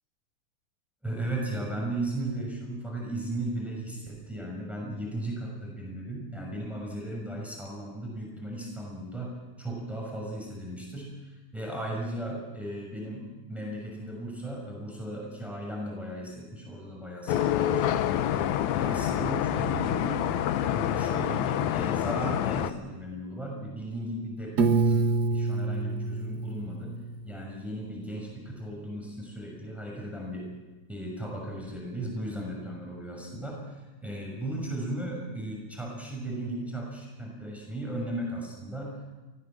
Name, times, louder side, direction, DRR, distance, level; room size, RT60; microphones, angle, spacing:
voice 1, 1.0-18.4 18.7-30.5 30.9-39.1, right 1 dB, ahead, -1 dB, 6.2 m, -36 dB
sound 1, 17.3-22.7, left 11 dB, 75° left, 2.2 m, -27 dB
Piano, 24.6-27.5, right 4 dB, 45° right, 1.5 m, -27 dB
24.5 x 18.0 x 7.5 m, 1.2 s
omnidirectional pair, 3.5 m